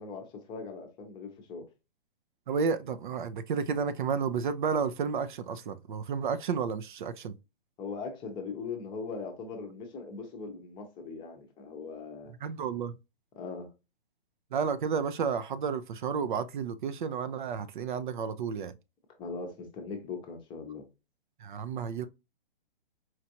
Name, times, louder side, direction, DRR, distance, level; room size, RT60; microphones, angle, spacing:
voice 1, 0.0-1.7 7.8-12.3 13.3-13.7 19.2-20.9, left 4 dB, 15° left, 0.7 m, -40 dB
voice 2, 2.5-7.4 12.4-13.0 14.5-18.7 21.4-22.1, right 6 dB, 55° right, 0.5 m, -31 dB
4.4 x 2.4 x 2.8 m
hypercardioid pair, 140°, 29 cm